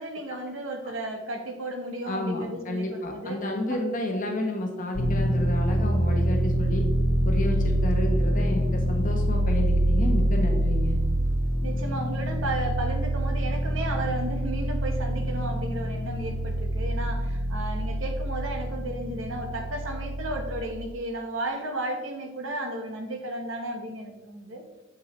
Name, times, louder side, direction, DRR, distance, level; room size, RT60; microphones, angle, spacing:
voice 1, 0.0-3.4 3.7-3.8 11.6-24.6, right 1 dB, 75° right, 4 dB, 0.9 m, -34 dB
voice 2, 2.0-6.8 7.2-11.0, left 1 dB, 40° left, 2 dB, 1.0 m, -30 dB
sound 1, 5.0-20.6, right 1 dB, 90° left, 1.1 m, -26 dB
7.1 x 6.0 x 3.0 m, 1.2 s
head